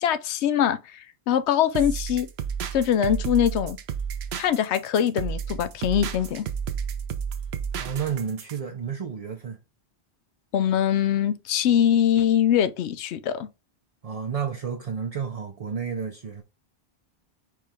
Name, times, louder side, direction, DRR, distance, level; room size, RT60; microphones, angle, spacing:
voice 1, 0.0-2.3 2.7-3.8 4.4-6.5 10.5-13.5, left 9 dB, 85° left, 0.8 m, -23 dB
sound 1, 1.7-8.6, right 7 dB, 75° right, 0.9 m, -32 dB
voice 2, 7.8-9.6 14.0-16.4, right 7 dB, 40° right, 0.6 m, -31 dB
4.6 x 3.2 x 3.6 m
omnidirectional pair, 1.1 m